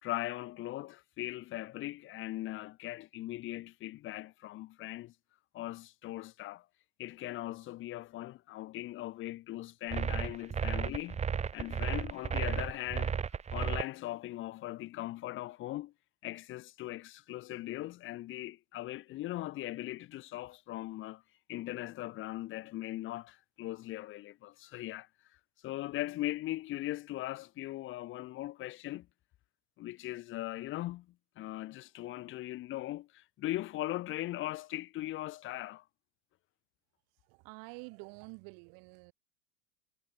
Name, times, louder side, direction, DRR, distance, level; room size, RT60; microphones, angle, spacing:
voice 1, 0.0-5.1 5.5-6.7 7.0-11.2 11.5-13.1 13.5-15.9 16.2-21.2 21.5-25.1 25.6-29.1 29.8-35.8, left 16 dB, 25° left, 0.9 m, -39 dB
sound 1, 9.9-13.8, right 7 dB, 15° right, 1.2 m, -33 dB
voice 2, 37.3-39.1, right 39 dB, 45° right, 2.8 m, -48 dB
figure-of-eight pair, 95°, 50 cm